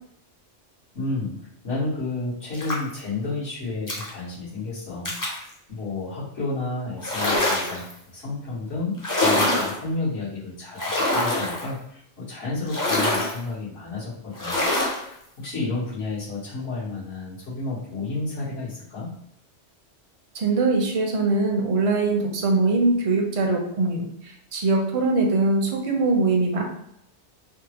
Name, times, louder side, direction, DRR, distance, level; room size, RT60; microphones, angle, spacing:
voice 1, 0.9-5.1 5.7-7.9 8.1-14.6 14.9-19.1, left 3 dB, 85° left, -10 dB, 1.7 m, -31 dB
sound 1, 2.5-3.0 3.9-4.1 5.0-5.4 7.0-7.9 9.0-9.8 10.8-11.7 12.7-13.4 14.3-15.0, left 1 dB, 25° left, 0.5 m, -24 dB
voice 2, 20.3-26.6, right 3 dB, 45° right, 1 dB, 0.4 m, -22 dB
3.6 x 2.1 x 2.9 m, 0.74 s
omnidirectional pair, 1.2 m